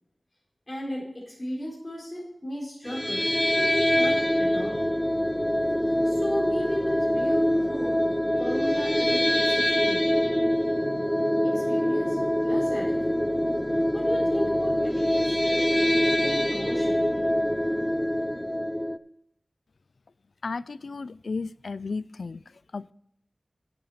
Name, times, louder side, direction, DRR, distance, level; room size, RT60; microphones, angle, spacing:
voice 1, 0.7-3.2 3.5-4.8 5.8-7.9 8.4-10.0 11.4-13.2 13.9-15.7 16.2-17.1, equal, 30° left, -4 dB, 4.2 m, -35 dB
sound 1, 2.8-19.0, equal, 10° left, 0.5 m, -24 dB
voice 2, 20.4-22.9, left 4 dB, 90° left, 19 dB, 0.3 m, -34 dB
9.1 x 8.6 x 5.6 m, 0.75 s
wide cardioid pair, 65°, 0 cm